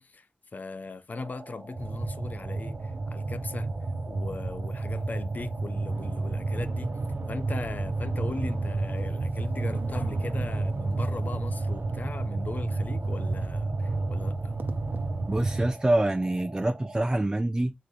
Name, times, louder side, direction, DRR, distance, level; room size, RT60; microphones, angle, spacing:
voice 1, 0.0-3.7 4.1-7.0 7.3-14.6, left 3 dB, 55° left, 0.7 m, -39 dB
sound 1, 1.1-17.2, right 2 dB, 45° right, 1.5 m, -47 dB
sound 2, 1.8-15.7, right 3 dB, 80° right, 0.9 m, -31 dB
voice 2, 15.3-17.7, right 1 dB, 20° right, 0.5 m, -26 dB
4.3 x 3.9 x 3.2 m
wide cardioid pair, 60°, 3 cm